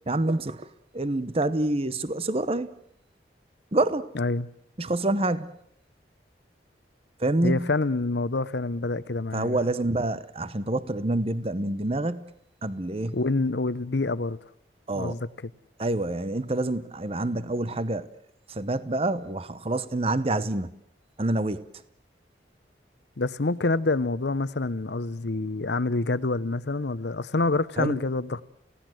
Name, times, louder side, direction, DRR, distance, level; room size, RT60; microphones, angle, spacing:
voice 1, 0.1-0.7 0.9-2.7 3.7-4.1 4.8-5.5 7.2-7.7 9.3-12.3 12.6-13.2 14.9-15.1 15.8-18.1 18.5-20.7 21.2-21.6 27.8-28.0, right 2 dB, 30° right, 0.9 m, -27 dB
voice 2, 4.1-4.5 7.4-9.6 13.1-14.4 14.9-15.5 23.2-28.4, left 3 dB, 70° left, 0.8 m, -27 dB
29.5 x 17.0 x 7.8 m
head